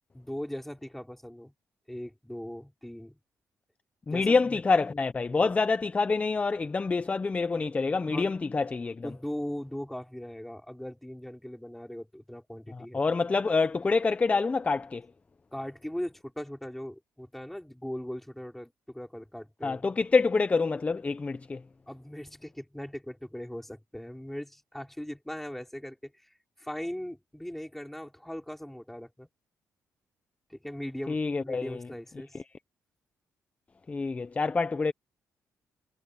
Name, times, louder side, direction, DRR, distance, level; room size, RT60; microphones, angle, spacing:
voice 1, 0.1-1.5 1.9-3.2 4.1-4.6 8.1-8.3 9.0-13.0 15.5-19.8 21.9-26.3 26.6-29.3 30.5-32.4, equal, 5° left, 5.4 m, -39 dB
voice 2, 4.1-9.1 12.7-15.1 19.6-21.6 31.1-31.9 32.3-32.4 33.9-34.9, left 4 dB, 25° left, 0.7 m, -27 dB
cardioid pair, 115°, 6 cm